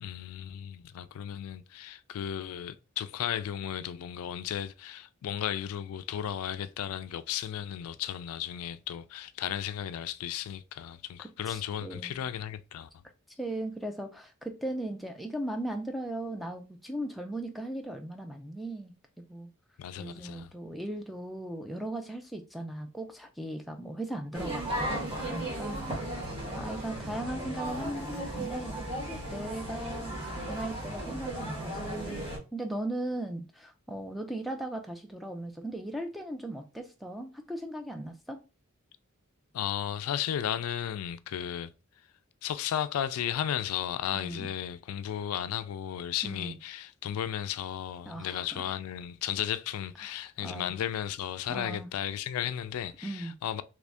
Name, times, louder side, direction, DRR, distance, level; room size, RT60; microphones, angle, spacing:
voice 1, 0.0-12.9 19.8-20.5 39.5-41.7 42.4-53.6, left 10 dB, 80° left, 0.3 m, -34 dB
voice 2, 11.5-12.3 13.4-19.5 20.0-25.0 25.3-25.8 26.6-28.8 29.1-38.4 44.1-44.5 46.2-46.6 48.0-48.6 50.0-50.1 50.4-50.7 51.5-51.9 53.0-53.4, right 1 dB, ahead, 0.3 m, -38 dB
sound 1, 24.3-32.4, right 1 dB, 25° right, 1.3 m, -35 dB
3.0 x 2.5 x 3.4 m
head